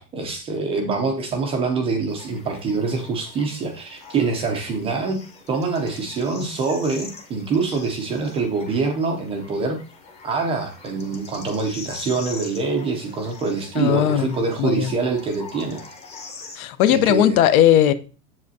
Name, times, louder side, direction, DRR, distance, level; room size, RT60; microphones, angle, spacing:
voice 1, 0.0-5.2 5.5-9.8 10.2-15.9 16.9-17.4, right 4 dB, 15° right, 0.4 m, -25 dB
sound 1, 2.1-16.6, left 4 dB, 15° left, 0.8 m, -43 dB
voice 2, 13.8-14.9 16.6-17.9, left 11 dB, 70° left, 0.8 m, -18 dB
7.5 x 7.2 x 2.7 m
supercardioid pair, 155°, 45 cm